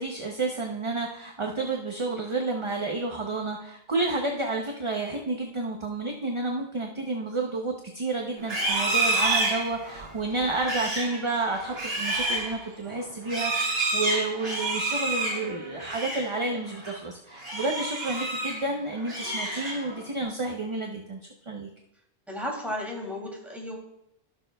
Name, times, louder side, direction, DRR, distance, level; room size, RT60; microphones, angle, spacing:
voice 1, 0.0-21.7, right 2 dB, 30° right, 1 dB, 0.7 m, -30 dB
Livestock farm animals working animals, 8.4-16.3 16.7-17.0 17.4-18.6 19.0-20.0, right 2 dB, 60° right, 3.2 m, -29 dB
voice 2, 22.3-23.7, left 1 dB, ahead, -2 dB, 2.6 m, -34 dB
16.0 x 6.5 x 2.3 m, 0.80 s
omnidirectional pair, 1.1 m